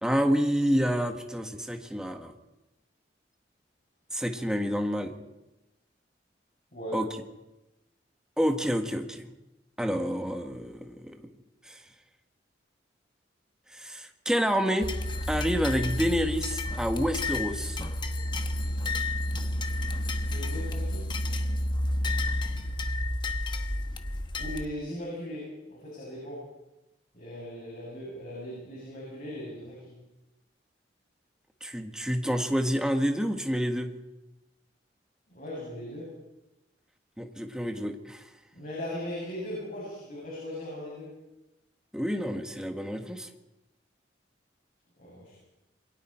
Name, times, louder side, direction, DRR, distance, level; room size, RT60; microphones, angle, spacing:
voice 1, 0.0-2.3 4.1-5.2 6.9-7.1 8.4-9.3 9.8-11.2 11.6-11.8 13.7-14.9 15.3-17.8 31.6-33.9 37.2-38.3 41.9-43.3, equal, 5° right, 5 dB, 1.4 m, -28 dB
voice 2, 6.7-7.1 20.3-21.1 24.4-26.5 27.1-30.0 35.3-36.1 38.5-41.1 45.0-45.4, left 1 dB, 45° left, -4 dB, 7.3 m, -38 dB
sound 1, 14.8-24.6, left 1 dB, 25° left, 1.1 m, -30 dB
27.5 x 22.5 x 4.4 m, 0.96 s
head